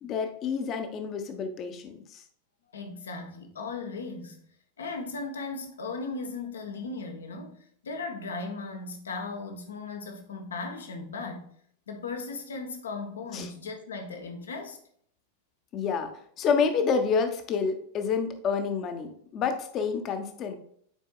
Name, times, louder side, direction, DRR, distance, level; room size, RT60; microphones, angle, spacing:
voice 1, 0.0-2.2 13.3-13.5 15.7-16.1 16.4-20.6, left 5 dB, 35° left, 1.0 m, -28 dB
voice 2, 2.7-4.4 4.8-11.5 11.9-14.8, left 3 dB, 70° left, 1.1 m, -37 dB
9.1 x 4.5 x 2.4 m
figure-of-eight pair, 90°, 0 cm